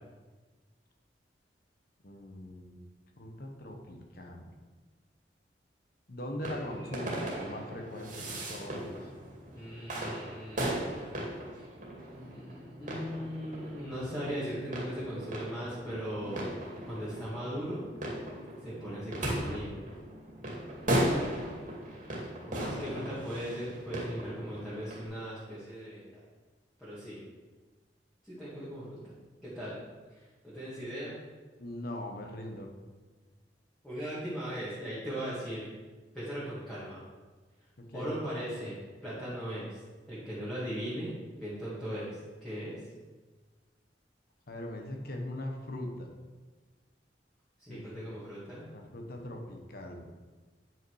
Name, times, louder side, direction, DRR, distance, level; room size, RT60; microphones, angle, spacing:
voice 1, 2.0-2.8 3.2-4.5 6.1-9.1 22.6-23.1 31.6-32.7 37.8-38.1 44.5-46.2 47.7-48.1 48.5-50.1, left 1 dB, 60° left, 2 dB, 1.2 m, -41 dB
sound 1, 6.4-25.0, right 1 dB, 45° right, 2.3 m, -37 dB
voice 2, 9.5-10.8 11.5-11.7 12.1-16.5 16.9-17.8 18.6-19.8 22.4-26.2 26.8-27.2 28.2-29.1 29.4-29.8 30.2-31.1 33.8-35.7 36.1-37.0 37.9-39.8 40.1-42.8 47.6-48.7, equal, ahead, -11 dB, 2.2 m, -38 dB
9.2 x 5.7 x 4.8 m, 1.3 s
head